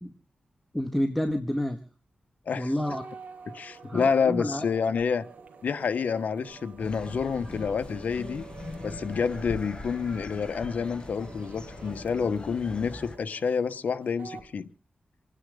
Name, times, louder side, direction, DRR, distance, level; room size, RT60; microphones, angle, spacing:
voice 1, 0.7-1.8 2.5-3.0 3.8-4.6, left 1 dB, 5° left, 6 dB, 1.7 m, -29 dB
voice 2, 2.5-3.0 3.5-5.2 5.6-8.4 8.8-14.7, left 6 dB, 80° left, 11 dB, 1.2 m, -28 dB
sound 1, 2.9-14.5, right 5 dB, 90° right, 2.5 m, -48 dB
sound 2, 5.0-5.1 5.5-6.0 6.3-10.3, right 1 dB, 60° right, 2.8 m, -49 dB
sound 3, 6.8-13.2, left 3 dB, 35° left, 1.3 m, -42 dB
28.0 x 9.9 x 3.8 m, 0.36 s
wide cardioid pair, 90°, 3 cm